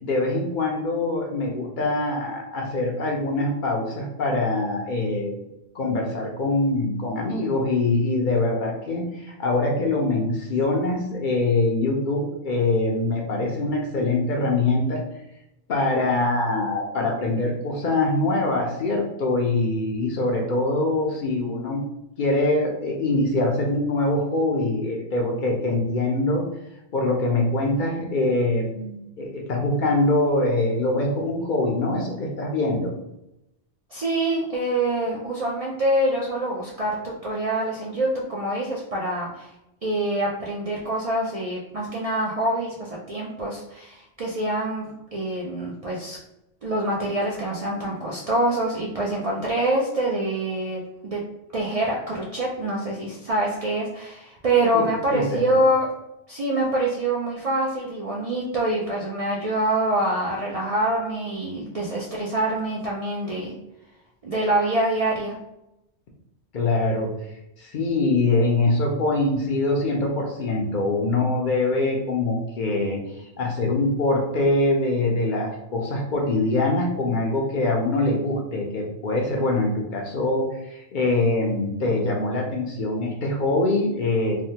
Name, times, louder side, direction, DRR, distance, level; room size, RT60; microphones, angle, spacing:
voice 1, 0.0-5.3 5.7-15.0 15.7-21.8 22.2-26.4 26.9-32.9 54.7-54.8 55.1-55.4 66.5-67.1 67.6-84.4, left 2 dB, 55° left, 0 dB, 0.6 m, -23 dB
voice 2, 33.9-39.5 39.8-46.2 46.6-51.2 51.5-55.9 56.3-63.5 64.2-65.3, right 1 dB, 55° right, -4 dB, 0.4 m, -25 dB
3.3 x 2.1 x 2.7 m, 0.88 s
omnidirectional pair, 1.1 m